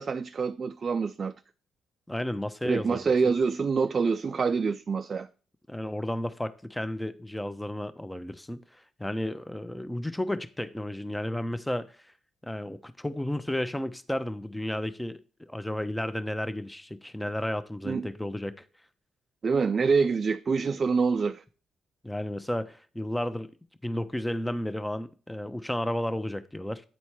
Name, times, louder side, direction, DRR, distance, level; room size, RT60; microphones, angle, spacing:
voice 1, 0.0-1.3 2.6-5.3 17.8-18.1 19.4-21.4, right 5 dB, 45° right, 0.3 m, -26 dB
voice 2, 2.1-3.3 5.7-8.6 9.0-11.9 12.4-18.7 22.0-23.5 23.8-26.8, left 1 dB, 10° left, 0.7 m, -32 dB
9.1 x 4.1 x 4.8 m
hypercardioid pair, 45°, 0 cm